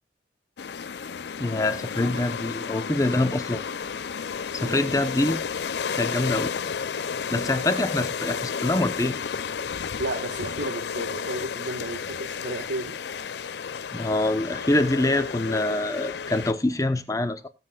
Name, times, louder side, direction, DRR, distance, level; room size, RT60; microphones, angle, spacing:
sound 1, 0.6-16.5, left 6 dB, 65° left, 0.5 m, -32 dB
voice 1, 1.4-3.6 4.5-5.4 5.9-6.5 7.3-9.2 13.9-17.5, left 2 dB, 20° left, 0.9 m, -25 dB
voice 2, 10.0-12.9, right 1 dB, 80° right, 1.4 m, -33 dB
19.0 x 7.7 x 2.3 m
head